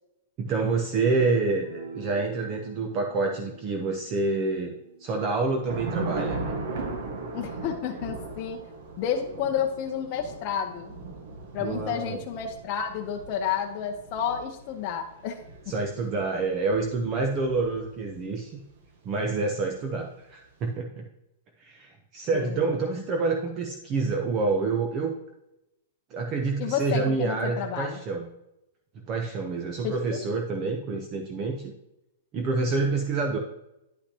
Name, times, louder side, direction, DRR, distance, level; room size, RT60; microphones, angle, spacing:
voice 1, 0.4-4.7 5.0-6.6 11.6-12.2 15.7-18.6 19.0-21.0 21.6-25.1 26.1-28.3 29.1-31.7 32.3-33.4, right 3 dB, 25° right, 3 dB, 0.7 m, -27 dB
sound 1, 1.6-8.1, right 4 dB, 75° right, 2.9 m, -48 dB
Thunder / Rain, 5.7-18.2, right 3 dB, 55° right, 1.4 m, -37 dB
voice 2, 7.3-8.6 9.0-10.9 11.5-15.4 22.3-22.7 26.6-28.0 29.8-30.2, left 8 dB, 35° left, 1 dB, 0.7 m, -30 dB
10.0 x 5.7 x 2.9 m, 0.90 s
supercardioid pair, 165°, 0 cm